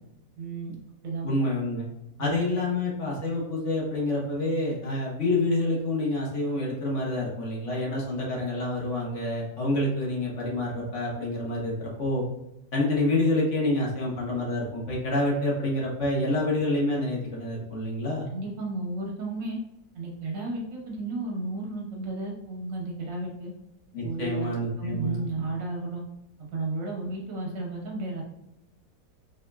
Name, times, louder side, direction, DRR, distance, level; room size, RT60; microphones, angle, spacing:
voice 1, 0.4-1.5 2.2-2.3 18.3-19.6 20.0-23.5 24.0-24.5 24.8-26.0 26.4-28.2, right 2 dB, 90° right, -1 dB, 1.9 m, -33 dB
voice 2, 1.2-1.9 2.2-12.2 12.7-18.2 23.9-25.2, left 2 dB, 45° left, -3 dB, 1.3 m, -27 dB
4.9 x 3.5 x 2.3 m, 0.86 s
omnidirectional pair, 1.9 m